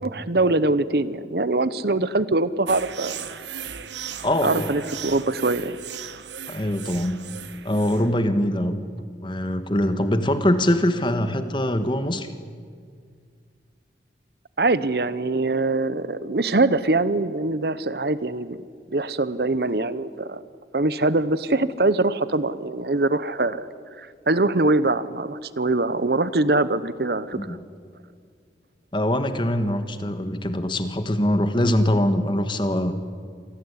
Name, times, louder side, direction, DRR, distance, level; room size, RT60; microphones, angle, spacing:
voice 1, 0.0-3.2 4.4-5.8 14.6-18.6 18.9-20.4 20.7-23.6 24.0-27.6, right 2 dB, 60° right, 15 dB, 0.9 m, -23 dB
sound 1, 2.7-8.2, right 8 dB, 90° right, 1.2 m, -37 dB
voice 2, 4.2-4.7 6.5-7.2 7.6-8.8 9.2-12.3 27.4-27.6 28.9-32.9, left 1 dB, 25° left, 9 dB, 1.5 m, -23 dB
26.5 x 18.5 x 10.0 m, 2.1 s
head